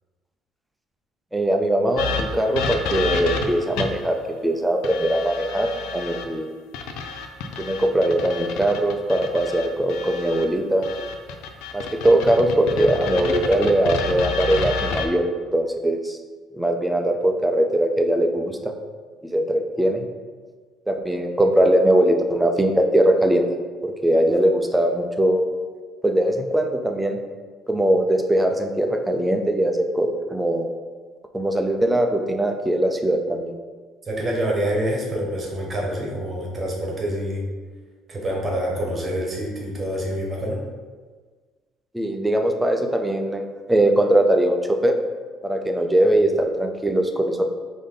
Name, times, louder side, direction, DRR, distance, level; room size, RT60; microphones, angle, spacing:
voice 1, 1.3-6.5 7.6-10.9 11.7-15.3 15.5-16.2 16.5-18.7 19.2-20.0 20.9-23.4 23.8-25.5 26.0-27.2 27.7-30.7 31.3-33.5 41.9-45.0 45.4-47.4, right 1 dB, 5° right, 4 dB, 0.4 m, -21 dB
sound 1, 2.0-4.1 4.8-6.3 6.7-10.5 10.8-15.1, left 5 dB, 85° left, 0.4 m, -30 dB
voice 2, 34.1-37.4 38.1-40.6, equal, 25° right, -2 dB, 1.1 m, -26 dB
5.1 x 2.7 x 3.8 m, 1.5 s
cardioid pair, 130°, 0 cm